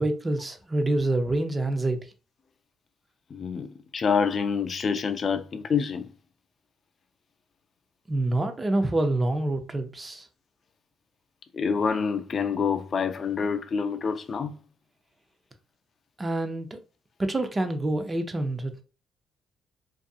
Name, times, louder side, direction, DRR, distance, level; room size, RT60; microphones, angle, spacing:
voice 1, 0.0-2.1 8.1-10.3 16.2-16.8 17.2-18.7, right 2 dB, 20° right, 0.5 m, -26 dB
voice 2, 3.3-3.7 3.9-6.1 11.5-14.5, left 6 dB, 45° left, 0.3 m, -27 dB
2.6 x 2.4 x 2.3 m
cardioid pair, 90°, 0 cm